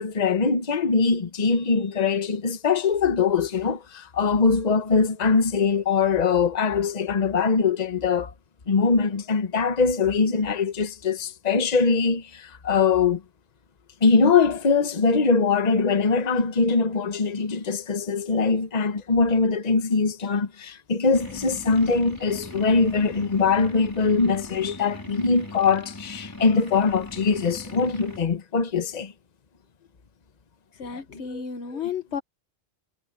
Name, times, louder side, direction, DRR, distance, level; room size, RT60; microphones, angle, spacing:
voice 1, 0.0-8.3 8.7-13.2 14.0-29.1 30.9-31.4 31.8-31.9, left 4 dB, 40° left, 1.1 m, -22 dB
sound 1, 21.1-28.2, left 2 dB, 15° left, 4.2 m, -39 dB
voice 2, 30.8-32.2, left 7 dB, 75° left, 1.4 m, -32 dB
omnidirectional pair, 1.1 m